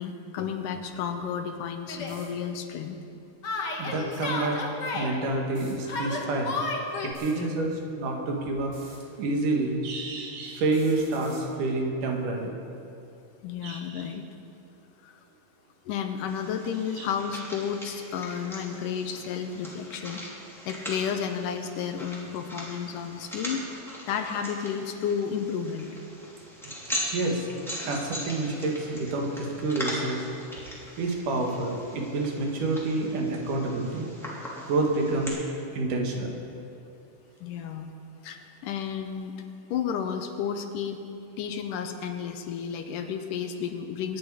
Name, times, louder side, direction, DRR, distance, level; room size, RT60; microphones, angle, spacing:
voice 1, 0.0-3.0 7.3-7.8 13.4-14.3 15.0-15.2 15.9-20.2 20.7-23.7 24.1-25.9 31.3-31.5 37.4-37.9 38.2-39.4 39.7-41.0 41.4-44.2, left 7 dB, 85° left, 6 dB, 2.4 m, -32 dB
sound 1, 1.6-1.7 2.0-2.3 4.0-4.2 5.5-5.8 7.0-7.3 8.6-9.0 10.6-11.4, right 1 dB, 55° right, 4.5 m, -50 dB
Yell, 1.9-2.2 3.4-5.1 5.9-7.1, left 3 dB, 45° left, 1.6 m, -32 dB
voice 2, 3.8-4.6 4.9-6.6 7.0-7.7 8.0-8.7 9.2-12.5 13.6-14.0 17.0-17.1 27.1-27.5 27.8-30.2 31.0-34.1 34.7-35.4 35.7-36.3, right 2 dB, 80° right, 1 dB, 3.3 m, -28 dB
sound 2, 16.3-35.3, equal, ahead, 2.5 m, -40 dB
23.5 x 9.9 x 4.9 m, 2.6 s
omnidirectional pair, 3.7 m